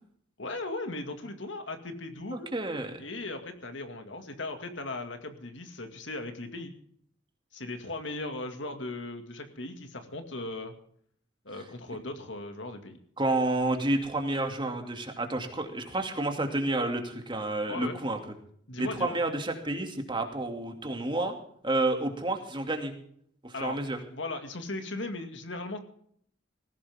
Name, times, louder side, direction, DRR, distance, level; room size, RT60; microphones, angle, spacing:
voice 1, 0.4-2.5 3.0-6.7 7.5-10.7 11.5-13.0 17.7-18.0 18.7-19.2 23.5-23.8 24.1-25.8, left 2 dB, 70° left, 6 dB, 2.2 m, -37 dB
voice 2, 2.3-3.0 13.2-18.2 18.8-21.3 21.6-22.9 23.4-24.0, right 2 dB, 25° right, 4 dB, 2.5 m, -30 dB
19.5 x 16.5 x 3.7 m, 0.63 s
head